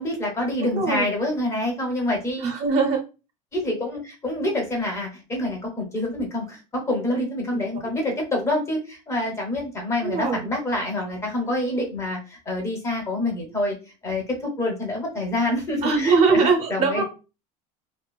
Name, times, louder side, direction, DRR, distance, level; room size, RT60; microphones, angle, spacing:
voice 1, 0.0-2.5 3.5-13.7 14.0-17.0, left 1 dB, 15° left, 1 dB, 0.6 m, -27 dB
voice 2, 0.7-1.1 2.4-3.0 7.5-7.6 10.0-10.4 15.8-17.0, right 4 dB, 40° right, 2 dB, 0.7 m, -21 dB
2.4 x 2.4 x 2.2 m, 0.31 s
cardioid pair, 165°, 17 cm